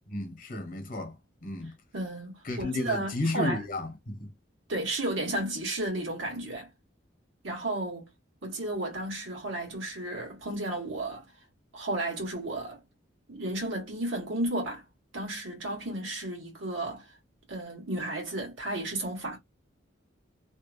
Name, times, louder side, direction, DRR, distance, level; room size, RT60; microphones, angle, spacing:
voice 1, 0.1-1.1 1.4-1.7 2.4-4.3, left 2 dB, 45° left, 1.0 m, -33 dB
voice 2, 1.9-3.6 4.7-6.7 7.4-8.1 8.4-11.2 11.7-12.8 13.3-14.8 15.1-17.1 17.5-19.4, right 1 dB, 85° right, 1.4 m, -33 dB
2.8 x 2.2 x 2.4 m
head